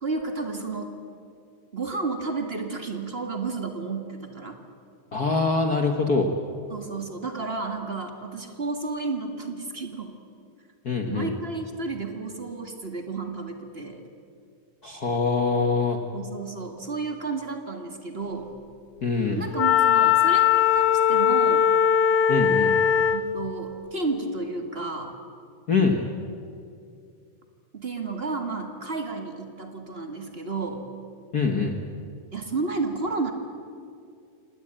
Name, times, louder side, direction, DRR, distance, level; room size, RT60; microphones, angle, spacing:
voice 1, 0.0-0.9 1.7-4.6 6.7-10.1 11.1-14.0 16.1-18.5 19.3-21.7 23.0-25.2 27.7-30.9 32.3-33.3, right 3 dB, 30° right, 5 dB, 1.2 m, -32 dB
voice 2, 5.1-6.3 10.8-11.3 14.8-16.0 19.0-19.4 22.3-22.8 25.7-26.0 31.3-31.8, left 4 dB, 50° left, 4 dB, 1.1 m, -24 dB
Wind instrument woodwind instrument, 19.5-23.3, left 8 dB, 75° left, 2.3 m, -20 dB
26.5 x 19.0 x 8.9 m, 2.4 s
omnidirectional pair, 3.6 m